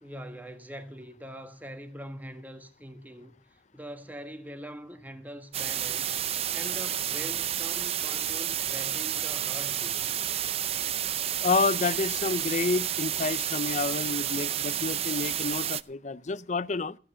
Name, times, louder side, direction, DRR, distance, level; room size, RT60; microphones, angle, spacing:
voice 1, 0.0-3.3 3.7-10.1, equal, 10° right, 1.5 m, -43 dB
sound 1, 5.5-15.8, right 10 dB, 35° right, 0.5 m, -30 dB
voice 2, 11.4-17.0, left 4 dB, 40° left, 0.6 m, -29 dB
15.0 x 9.3 x 5.6 m
head